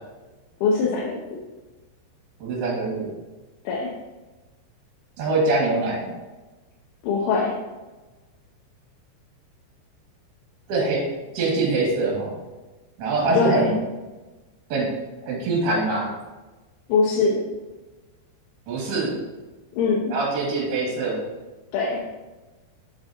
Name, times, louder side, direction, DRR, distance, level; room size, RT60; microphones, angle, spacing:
voice 1, 0.6-1.4 3.6-3.9 7.0-7.6 13.3-13.8 16.9-17.5 19.7-20.2 21.7-22.1, left 4 dB, 80° left, -3 dB, 3.0 m, -22 dB
voice 2, 2.4-3.1 5.2-6.1 10.7-11.1 11.3-12.4 13.0-13.7 14.7-14.9 15.3-16.1 18.7-19.2 20.1-21.2, right 3 dB, 55° right, -4 dB, 3.8 m, -23 dB
7.7 x 6.5 x 2.9 m, 1.2 s
omnidirectional pair, 5.8 m